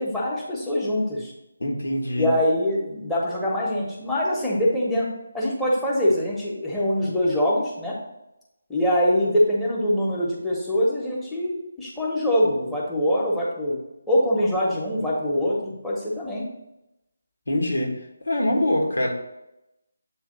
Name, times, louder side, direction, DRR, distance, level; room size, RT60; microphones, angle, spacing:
voice 1, 0.0-1.3 2.1-5.1 5.3-8.0 8.7-13.8 14.1-16.5, left 1 dB, 5° left, -7 dB, 1.4 m, -23 dB
voice 2, 1.6-2.3 17.5-18.0 18.2-19.1, left 1 dB, 75° left, 1 dB, 1.7 m, -24 dB
8.1 x 3.3 x 5.4 m, 0.90 s
figure-of-eight pair, 155°, 0 cm